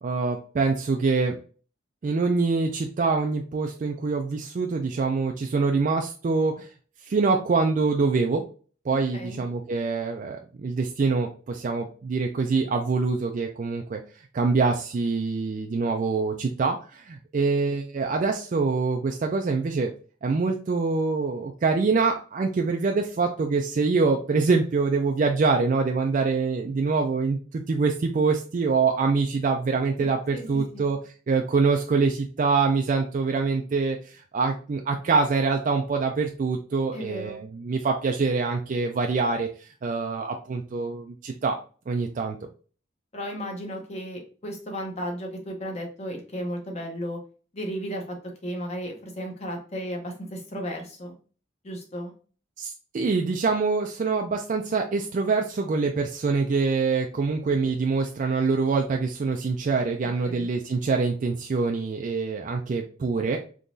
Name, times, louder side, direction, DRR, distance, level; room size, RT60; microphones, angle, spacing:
voice 1, 0.0-1.4 2.0-6.7 7.1-8.4 8.8-14.0 14.3-19.9 20.2-31.0 31.3-41.6 41.9-42.4 52.6-63.4, right 4 dB, 40° right, 3 dB, 0.3 m, -25 dB
voice 2, 36.9-37.4 43.1-47.2 47.5-48.2 48.4-51.1 51.6-52.1 60.2-60.5, equal, 35° left, 2 dB, 0.9 m, -34 dB
3.7 x 2.9 x 2.6 m, 0.39 s
head